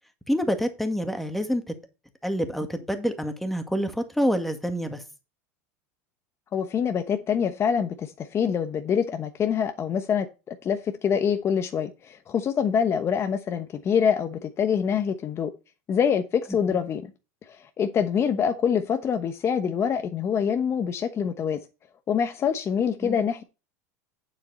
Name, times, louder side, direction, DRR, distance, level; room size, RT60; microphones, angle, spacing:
voice 1, 0.3-1.6 2.2-5.0 16.7-16.8 23.0-23.2, equal, ahead, 1.9 m, -27 dB
voice 2, 6.5-15.5 15.9-17.0 17.5-21.6 22.1-23.4, left 7 dB, 30° left, 1.1 m, -25 dB
8.9 x 7.6 x 4.1 m
supercardioid pair, 110°, 8 cm